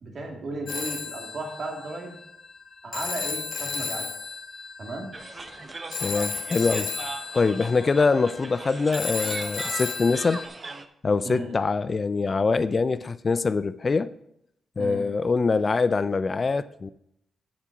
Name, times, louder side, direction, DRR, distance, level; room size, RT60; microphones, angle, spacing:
voice 1, 0.0-2.1 2.8-4.1 4.8-5.1 11.2-11.6 14.8-15.1, right 2 dB, 55° right, 2.2 m, -35 dB
Telephone, 0.7-10.5, left 5 dB, 60° left, 1.3 m, -34 dB
sound 1, 5.1-10.8, right 3 dB, 35° right, 0.7 m, -39 dB
voice 2, 6.0-6.9 7.3-10.4 11.0-14.1 14.8-16.9, left 4 dB, 40° left, 0.4 m, -24 dB
7.3 x 7.2 x 6.0 m
cardioid pair, 80°, 0 cm